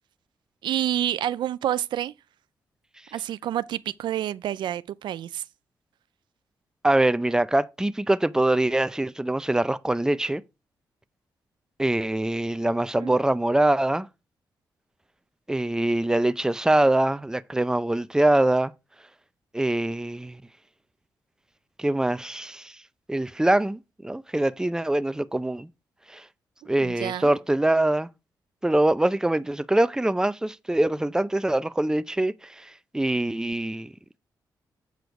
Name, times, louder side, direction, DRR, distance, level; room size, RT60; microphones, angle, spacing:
voice 1, 0.6-2.1 3.1-5.4 13.0-13.2 26.8-27.3, right 11 dB, 80° right, 0.4 m, -28 dB
voice 2, 6.8-10.4 11.8-14.1 15.5-18.7 19.5-20.4 21.8-22.7 23.1-25.7 26.1-26.2 26.7-28.1 28.6-33.9, right 1 dB, 10° right, 0.5 m, -24 dB
7.9 x 5.0 x 4.7 m
cardioid pair, 65°, 8 cm